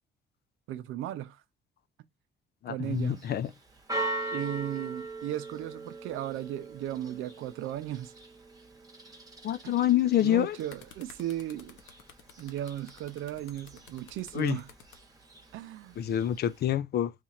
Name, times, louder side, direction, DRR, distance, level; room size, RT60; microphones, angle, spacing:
voice 1, 0.7-1.4 2.7-3.2 4.3-8.1 9.6-9.7 10.2-11.8 12.4-14.7 15.5-16.0, right 12 dB, 90° right, 0.5 m, -36 dB
voice 2, 2.6-3.5 9.4-10.6 14.3-14.6 16.0-17.1, left 11 dB, 55° left, 0.4 m, -27 dB
Church bell, 2.8-16.6, right 2 dB, 20° right, 1.0 m, -42 dB
sound 1, 10.5-15.0 15.9-16.1, left 7 dB, 75° left, 0.8 m, -53 dB
3.0 x 2.5 x 4.1 m
cardioid pair, 90°, 20 cm